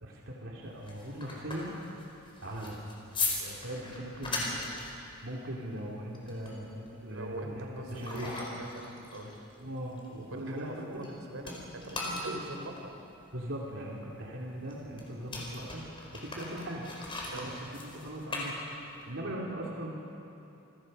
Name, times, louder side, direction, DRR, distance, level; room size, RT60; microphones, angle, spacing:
voice 1, 0.0-1.7 2.4-2.8 3.4-4.5 4.9-8.4 9.6-10.9 12.2-12.3 13.3-15.8 16.1-16.9 17.3-20.0, right 1 dB, 70° right, -3 dB, 2.9 m, -40 dB
sound 1, 0.6-11.1 11.4-19.1, left 3 dB, 25° left, 4.7 m, -40 dB
voice 2, 7.1-9.3 10.3-12.9 17.3-17.5 19.1-19.3, right 1 dB, 85° right, 3 dB, 3.5 m, -42 dB
28.5 x 22.5 x 5.5 m, 2.9 s
head